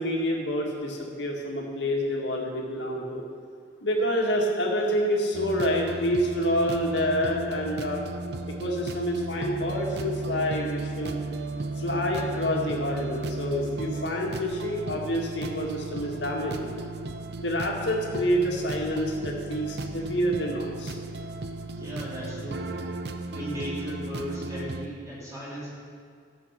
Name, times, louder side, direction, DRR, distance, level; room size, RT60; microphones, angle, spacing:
voice 1, 0.0-3.2 3.8-8.0 8.6-11.2 11.8-16.7 17.4-21.0, equal, 70° left, -1 dB, 2.0 m, -27 dB
sound 1, 5.3-24.9, right 2 dB, 60° right, 0.6 m, -35 dB
voice 2, 21.8-22.7 23.3-25.7, equal, 15° right, -8 dB, 3.3 m, -36 dB
13.5 x 7.2 x 5.8 m, 2.1 s
head